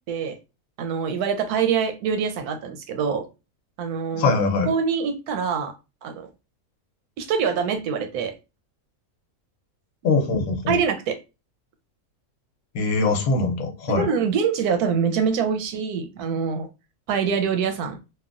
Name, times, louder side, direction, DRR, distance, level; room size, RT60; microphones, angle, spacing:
voice 1, 0.1-0.4 0.8-3.3 3.8-4.3 4.7-5.7 6.0-6.3 7.2-8.3 10.7-11.2 13.9-16.7 17.1-18.0, right 6 dB, 90° right, 7 dB, 1.1 m, -24 dB
voice 2, 4.1-4.7 10.0-10.8 12.7-14.1, left 3 dB, 75° left, 5 dB, 1.1 m, -22 dB
3.1 x 2.2 x 2.4 m, 0.28 s
omnidirectional pair, 1.6 m